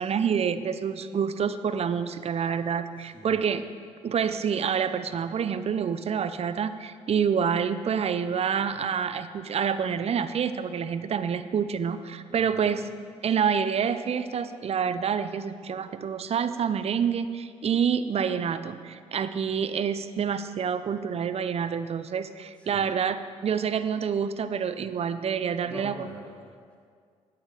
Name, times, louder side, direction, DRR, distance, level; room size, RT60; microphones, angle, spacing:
voice 1, 0.0-3.6 4.0-12.8 13.2-26.1, right 7 dB, 50° right, 12 dB, 0.6 m, -27 dB
voice 2, 2.8-3.5 12.3-12.9 22.6-22.9 25.6-26.8, equal, 10° left, -3 dB, 3.1 m, -45 dB
9.5 x 9.0 x 4.9 m, 2.1 s
supercardioid pair, 55°, 14 cm